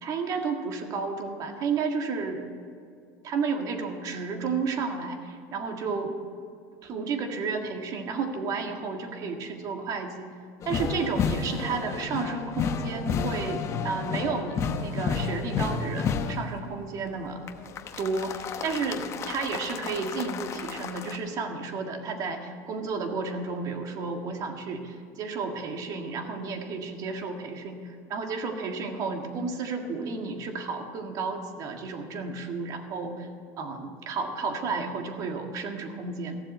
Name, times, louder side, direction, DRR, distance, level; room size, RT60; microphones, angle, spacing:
voice 1, 0.0-2.4 3.2-6.2 6.8-10.3 10.7-17.4 18.0-18.4 18.6-33.3 33.6-36.4, right 4 dB, 40° right, 4 dB, 1.8 m, -32 dB
sound 1, 10.6-16.6 17.5-21.2, left 6 dB, 35° left, 0.9 m, -31 dB
15.0 x 7.5 x 7.8 m, 2.3 s
supercardioid pair, 135°, 9 cm